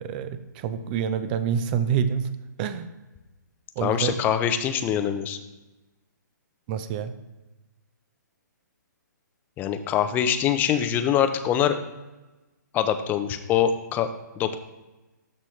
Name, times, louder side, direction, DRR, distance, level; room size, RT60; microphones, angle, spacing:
voice 1, 0.0-2.3 2.6-2.9 3.8-4.2 6.7-7.1, right 8 dB, 30° right, 12 dB, 0.5 m, -27 dB
voice 2, 3.8-5.4 9.6-11.8 12.7-14.1 14.4-14.6, left 9 dB, 15° left, 9 dB, 0.5 m, -24 dB
12.5 x 4.3 x 3.2 m, 1.1 s
hypercardioid pair, 140°, 10 cm